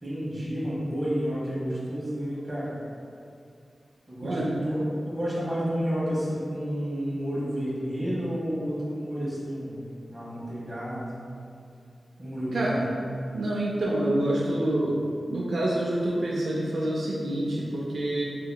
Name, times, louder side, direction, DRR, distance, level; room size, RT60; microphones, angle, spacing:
voice 1, 0.0-2.7 4.1-9.8 10.1-11.2 12.2-12.9, equal, 25° right, -8 dB, 1.0 m, -30 dB
voice 2, 4.2-4.5 12.5-12.8 13.3-15.0 15.3-18.2, right 1 dB, 80° right, -5 dB, 0.4 m, -27 dB
4.2 x 2.8 x 2.2 m, 2.4 s
wide cardioid pair, 105°, 0 cm